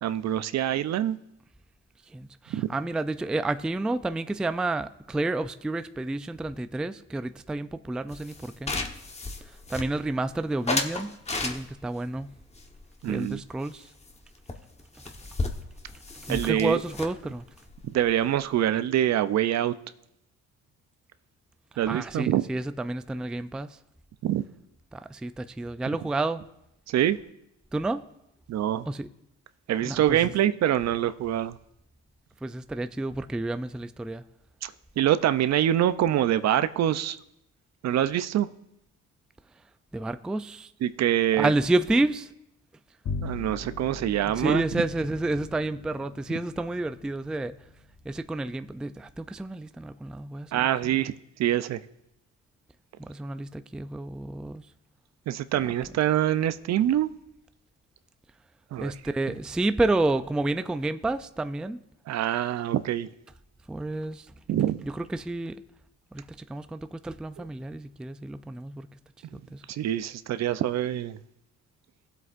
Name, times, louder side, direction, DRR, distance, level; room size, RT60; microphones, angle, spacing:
voice 1, 0.0-1.2 2.5-2.7 13.0-13.4 16.3-16.8 17.9-19.7 21.8-22.4 24.2-24.4 26.9-27.2 28.5-28.9 29.7-31.6 34.6-37.2 37.8-38.5 40.8-41.5 43.2-44.6 50.5-51.8 55.3-57.1 58.7-58.9 62.1-63.1 64.5-64.8 69.7-71.2, right 11 dB, 60° right, 0.5 m, -25 dB
voice 2, 2.1-8.8 9.4-11.1 11.4-12.3 13.0-13.9 16.2-17.5 21.9-23.8 24.9-26.4 27.7-28.0 28.9-29.1 29.8-30.3 32.4-34.2 39.9-40.7 41.4-42.3 44.3-47.5 48.0-51.0 53.0-54.7 58.8-61.8 63.7-64.3 64.8-65.6 66.1-68.9 69.3-69.6, right 2 dB, 5° right, 0.3 m, -30 dB
sound 1, 8.1-10.2 10.7-12.0 12.5-13.8 14.1-14.2 14.5-14.6 14.8-18.7, left 3 dB, 20° left, 1.1 m, -34 dB
Bowed string instrument, 43.0-48.7, left 4 dB, 50° left, 1.1 m, -40 dB
18.0 x 7.9 x 2.5 m
cardioid pair, 90°, 30 cm